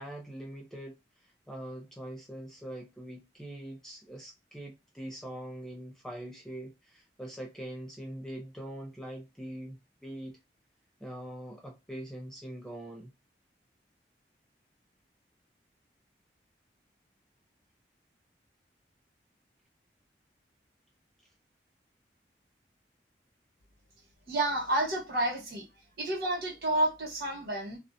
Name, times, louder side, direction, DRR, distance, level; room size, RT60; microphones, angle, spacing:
voice 1, 0.0-10.4 11.0-13.1, right 1 dB, 5° left, 0.4 m, -43 dB
voice 2, 24.3-25.6 26.0-27.8, right 1 dB, 60° right, 1.2 m, -30 dB
2.5 x 2.0 x 2.5 m
head